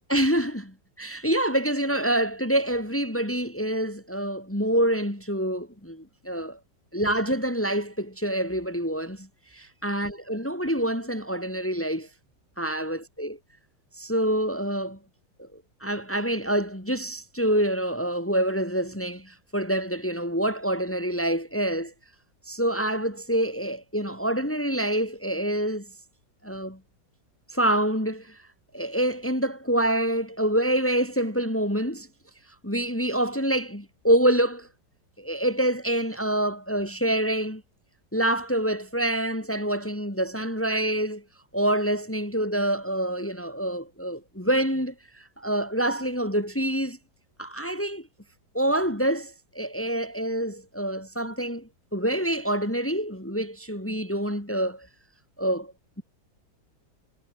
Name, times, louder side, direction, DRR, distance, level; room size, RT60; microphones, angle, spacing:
voice 1, 0.1-6.6 6.9-9.3 9.5-12.1 12.6-13.4 14.0-15.0 15.4-21.9 22.5-25.9 26.4-26.8 27.5-28.4 28.7-32.1 32.6-34.7 35.2-37.6 38.1-41.2 41.5-47.0 47.4-48.1 48.5-54.9 55.4-55.7, right 1 dB, 5° left, 3.6 m, -26 dB
omnidirectional pair, 2.0 m